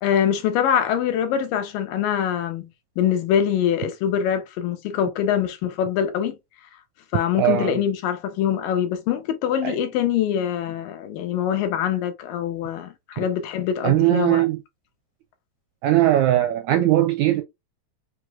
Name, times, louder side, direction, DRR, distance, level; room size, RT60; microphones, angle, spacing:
voice 1, 0.0-2.7 3.0-6.4 7.1-14.4, left 9 dB, 80° left, 2.7 m, -24 dB
voice 2, 7.4-7.8 9.6-9.8 13.2-13.3 13.8-14.6 15.8-17.4, right 13 dB, 80° right, 1.7 m, -19 dB
6.2 x 3.1 x 2.3 m
omnidirectional pair, 4.0 m